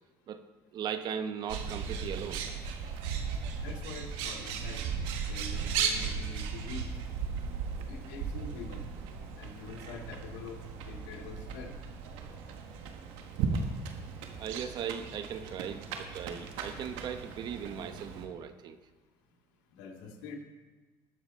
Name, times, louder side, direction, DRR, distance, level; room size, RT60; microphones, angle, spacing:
voice 1, 0.7-2.5 14.4-18.8, right 8 dB, 55° right, 10 dB, 0.9 m, -38 dB
Bird, 1.5-18.3, right 6 dB, 80° right, 1.4 m, -36 dB
voice 2, 3.6-4.8 5.3-6.9 7.9-8.8 9.4-11.7 19.7-20.4, left 5 dB, 85° left, 2 dB, 1.9 m, -45 dB
20.5 x 7.3 x 4.1 m, 1.4 s
cardioid pair, 105°, 9 cm